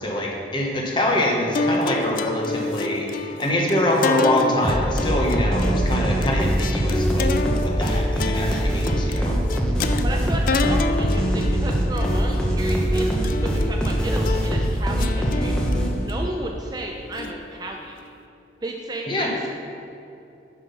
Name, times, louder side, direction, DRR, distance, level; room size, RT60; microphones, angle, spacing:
voice 1, 0.0-7.3 7.6-9.4 19.1-19.3, left 1 dB, 25° left, -1 dB, 1.1 m, -24 dB
sound 1, 1.5-18.0, left 4 dB, 50° left, 0.3 m, -30 dB
sound 2, 4.6-16.2, equal, 5° left, 0.7 m, -22 dB
voice 2, 10.0-15.5 15.9-18.0 18.6-19.4, right 1 dB, 20° right, 1 dB, 0.4 m, -33 dB
7.2 x 5.6 x 5.5 m, 2.7 s
head